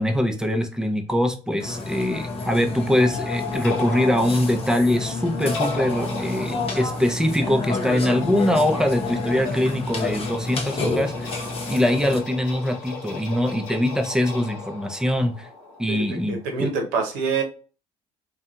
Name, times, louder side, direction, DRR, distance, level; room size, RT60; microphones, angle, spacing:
voice 1, 0.0-11.3 11.7-15.5 15.8-16.7, left 1 dB, 5° right, 0.6 m, -23 dB
Burping eructation, 1.6-12.2, left 3 dB, 40° left, 0.9 m, -29 dB
sound 1, 2.3-16.8, left 3 dB, 90° left, 0.7 m, -38 dB
voice 2, 15.9-17.4, right 5 dB, 80° right, 0.8 m, -26 dB
2.6 x 2.3 x 2.3 m
supercardioid pair, 65°, 15 cm